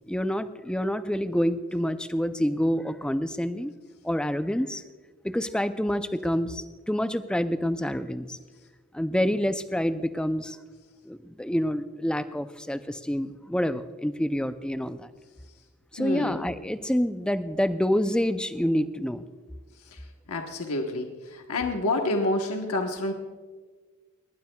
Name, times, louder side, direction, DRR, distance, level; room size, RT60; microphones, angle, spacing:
voice 1, 0.1-3.7 4.0-4.8 5.2-8.4 8.9-10.6 11.1-15.1 15.9-19.2, equal, 5° left, 11 dB, 0.4 m, -27 dB
voice 2, 16.0-16.5 19.8-23.1, left 2 dB, 85° left, 3 dB, 1.2 m, -29 dB
19.5 x 19.0 x 2.3 m, 1.5 s
head